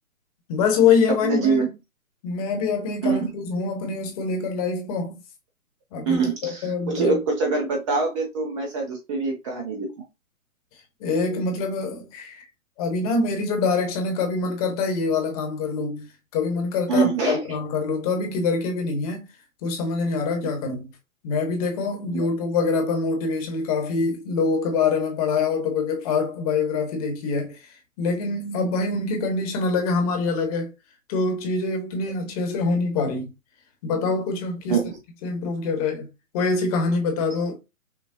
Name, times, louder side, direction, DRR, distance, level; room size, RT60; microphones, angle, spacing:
voice 1, 0.5-1.7 2.2-5.2 5.9-7.2 11.0-12.5 12.8-16.1 16.3-19.3 19.6-20.9 21.2-27.7 28.0-30.7 31.1-33.3 33.8-34.8 35.2-36.1 36.3-37.6, left 4 dB, 25° left, 1.1 m, -25 dB
voice 2, 1.2-1.7 3.0-3.3 6.1-9.9 16.9-17.4 34.7-35.0, right 4 dB, 20° right, 0.8 m, -24 dB
5.9 x 2.3 x 2.7 m
hypercardioid pair, 140°, 43 cm